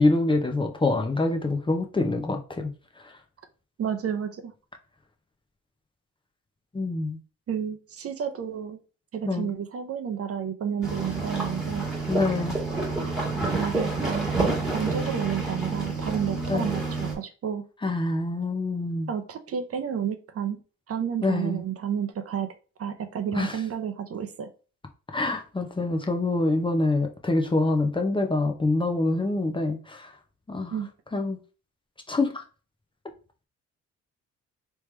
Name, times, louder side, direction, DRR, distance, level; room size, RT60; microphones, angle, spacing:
voice 1, 0.0-2.7 3.0-3.1 6.7-7.2 9.2-9.5 12.1-12.6 16.5-16.7 17.8-19.1 21.2-21.6 23.3-23.6 25.1-30.1 30.5-30.7 31.1-31.4 32.1-32.4, left 2 dB, 15° left, 0.7 m, -25 dB
voice 2, 3.8-4.5 7.5-8.8 9.1-11.9 13.6-14.3 14.7-17.6 19.1-20.6 20.9-22.5 22.8-24.5 30.7-30.9, right 8 dB, 50° right, 0.7 m, -31 dB
sound 1, 10.8-17.1, right 3 dB, ahead, 1.6 m, -28 dB
3.4 x 3.1 x 3.2 m
cardioid pair, 90°, 30 cm